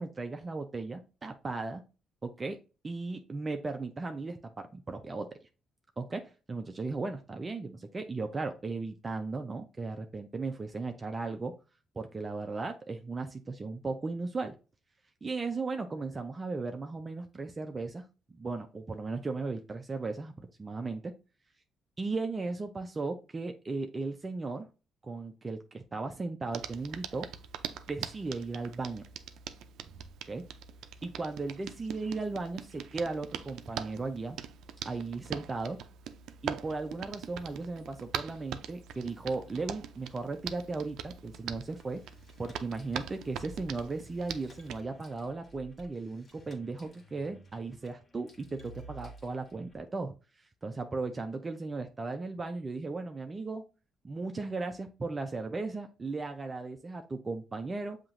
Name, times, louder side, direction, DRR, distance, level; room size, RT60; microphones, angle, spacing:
voice 1, 0.0-1.8 2.2-2.6 2.8-5.4 6.0-11.5 12.0-14.5 15.2-18.0 18.3-21.1 22.0-24.7 25.0-27.3 27.9-29.0 30.3-30.4 31.0-34.4 34.8-35.8 36.4-42.0 42.4-53.6 54.0-58.0, right 3 dB, 30° right, 5 dB, 0.5 m, -36 dB
Hands, 26.5-44.8, right 9 dB, 80° right, 0.4 m, -43 dB
sound 1, 41.8-49.8, right 1 dB, 40° left, 1.5 m, -54 dB
7.2 x 2.9 x 2.5 m, 0.32 s
cardioid pair, 90°, 0 cm